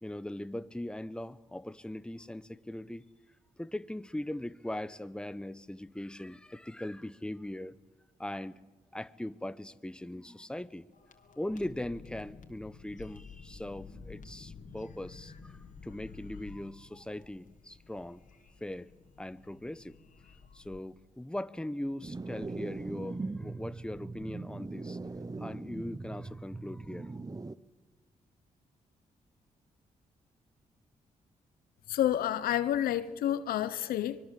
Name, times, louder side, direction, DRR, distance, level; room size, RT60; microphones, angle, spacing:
voice 1, 0.0-3.1 3.6-7.8 8.2-8.6 8.9-10.9 11.4-18.2 18.6-18.9 19.2-20.0 20.5-25.0 25.4-27.2, left 1 dB, 5° left, 1.0 m, -40 dB
sound 1, 10.9-20.8, left 5 dB, 60° left, 2.5 m, -51 dB
sound 2, 22.0-27.5, right 3 dB, 25° right, 1.0 m, -40 dB
voice 2, 31.9-34.2, left 11 dB, 90° left, 1.0 m, -29 dB
24.0 x 21.5 x 7.7 m
supercardioid pair, 55°, 15 cm